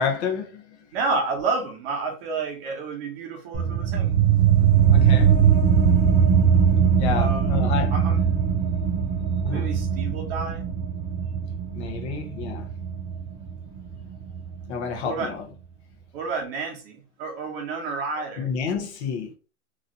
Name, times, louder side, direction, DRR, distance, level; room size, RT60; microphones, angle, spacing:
voice 1, 0.0-0.8 4.9-5.4 7.0-7.9 9.4-9.7 11.7-12.7 14.7-15.5 18.2-19.3, left 6 dB, 55° left, 0.9 m, -29 dB
voice 2, 0.9-4.2 7.1-7.6 7.9-8.2 9.5-10.6 15.0-15.3 16.1-18.5, right 4 dB, 45° right, 0.9 m, -30 dB
sound 1, 3.5-14.6, right 7 dB, 15° right, 0.4 m, -21 dB
3.0 x 2.6 x 2.6 m
supercardioid pair, 155°, 41 cm